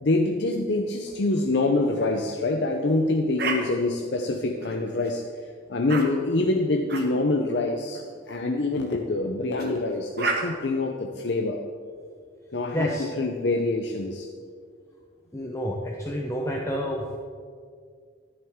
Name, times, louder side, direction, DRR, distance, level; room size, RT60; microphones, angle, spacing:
voice 1, 0.0-5.2 5.7-11.6 12.5-14.3, left 2 dB, 65° left, 3 dB, 0.7 m, -25 dB
sound 1, 3.4-3.6 4.6-5.1 5.9-6.0 6.9-7.1 7.9-8.1 9.6-9.7 10.2-10.4, right 4 dB, 60° right, 1.4 m, -29 dB
voice 2, 12.7-13.0 15.3-17.2, equal, 15° left, -1 dB, 0.8 m, -29 dB
13.0 x 10.5 x 3.7 m, 2.1 s
head